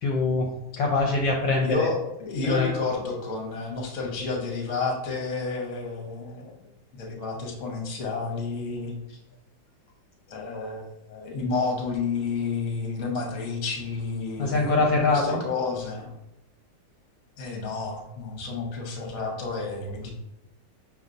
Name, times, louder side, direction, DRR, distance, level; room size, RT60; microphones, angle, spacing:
voice 1, 0.0-0.5 0.8-1.9 2.4-2.7 14.4-15.4, left 3 dB, 70° left, -1 dB, 1.2 m, -23 dB
voice 2, 1.6-6.5 7.0-8.9 10.3-14.7 15.1-16.1 17.4-20.1, left 4 dB, 45° left, 1 dB, 1.1 m, -30 dB
6.1 x 3.3 x 2.5 m, 0.85 s
omnidirectional pair, 2.3 m